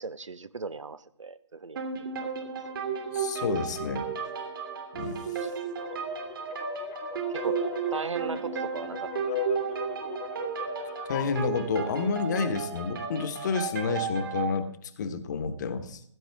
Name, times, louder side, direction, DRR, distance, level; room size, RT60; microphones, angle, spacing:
voice 1, 0.0-1.8 2.4-2.5 5.4-5.5 7.3-7.6 7.9-9.1 9.4-9.5, right 4 dB, 75° right, 14 dB, 1.0 m, -37 dB
sound 1, 1.8-14.6, right 6 dB, 45° right, 2.9 m, -33 dB
voice 2, 3.1-4.1 4.9-5.2 11.1-16.0, left 5 dB, 35° left, 9 dB, 1.3 m, -30 dB
sound 2, 5.8-11.4, left 12 dB, 15° left, 0.5 m, -39 dB
15.5 x 14.0 x 3.5 m, 0.66 s
figure-of-eight pair, 145°, 16 cm